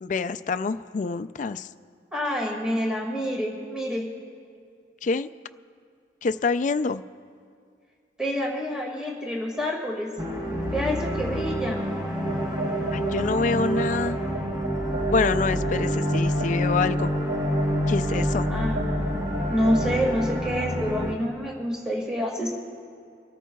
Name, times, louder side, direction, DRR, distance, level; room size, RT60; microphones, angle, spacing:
voice 1, 0.0-1.7 5.0-5.3 6.2-7.0 12.9-14.2 15.1-17.1 17.9-18.5, left 4 dB, 45° left, 12 dB, 0.4 m, -26 dB
voice 2, 2.1-4.1 8.2-10.1 10.7-11.8 18.5-19.2 19.5-22.6, equal, 5° right, -2 dB, 2.0 m, -27 dB
sound 1, 10.2-21.1, equal, 20° right, 1.1 m, -27 dB
sound 2, 12.2-19.9, right 1 dB, 70° right, 1.1 m, -34 dB
28.5 x 14.0 x 2.3 m, 2.3 s
head